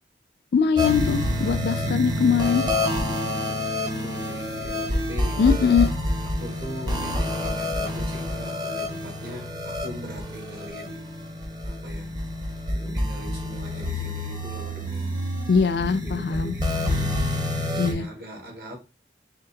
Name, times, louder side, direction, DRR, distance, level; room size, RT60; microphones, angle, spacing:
voice 1, 0.5-2.7 5.4-5.9 15.5-16.5 17.8-18.0, left 6 dB, 60° left, 0.4 m, -21 dB
sound 1, 0.8-17.9, left 1 dB, 25° right, 0.7 m, -28 dB
voice 2, 3.1-5.5 6.3-11.1 11.6-12.2 12.7-15.2 15.6-17.2 17.7-18.8, right 1 dB, 55° right, 1.6 m, -40 dB
3.7 x 2.5 x 3.8 m
head